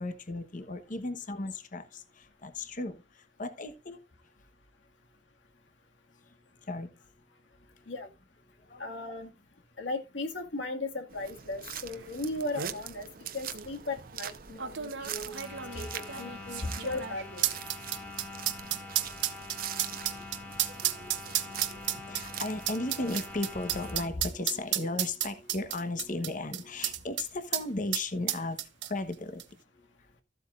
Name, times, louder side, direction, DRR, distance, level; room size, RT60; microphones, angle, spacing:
voice 1, 0.0-4.0 6.1-7.9 8.5-8.9 14.6-14.8 15.7-15.9 16.5-16.9 17.8-29.4 29.7-30.1, left 2 dB, 45° left, 1.1 m, -37 dB
voice 2, 8.8-9.3 9.8-13.1 13.3-15.3 15.7-17.5, left 2 dB, 90° left, 2.0 m, -37 dB
sound 1, 11.1-23.9, right 9 dB, 50° right, 0.9 m, -44 dB
sound 2, 12.0-12.1 12.4-12.8 13.5-13.7 14.6-27.3 27.5-27.6 27.9-29.1 29.4-29.5, right 12 dB, 70° right, 1.0 m, -32 dB
sound 3, 15.3-24.1, left 3 dB, 10° left, 2.8 m, -45 dB
14.0 x 8.0 x 2.5 m
head